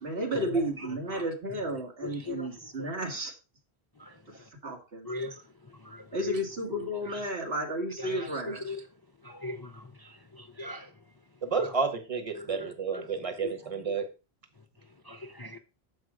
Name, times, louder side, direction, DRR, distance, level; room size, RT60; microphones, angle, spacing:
voice 1, 0.0-3.3 4.6-5.1 6.1-8.6, right 1 dB, 75° right, 2.0 m, -32 dB
voice 2, 2.0-2.5 4.0-4.1 5.1-5.3 5.9-6.4 8.0-8.3 8.6-8.8 9.3-9.7 10.6-10.8 12.4-12.7 12.9-13.0 13.4-13.5 15.1-15.6, left 3 dB, 30° left, 0.5 m, -38 dB
voice 3, 11.4-14.1, right 5 dB, 35° right, 1.3 m, -31 dB
7.5 x 5.5 x 4.9 m
omnidirectional pair, 1.1 m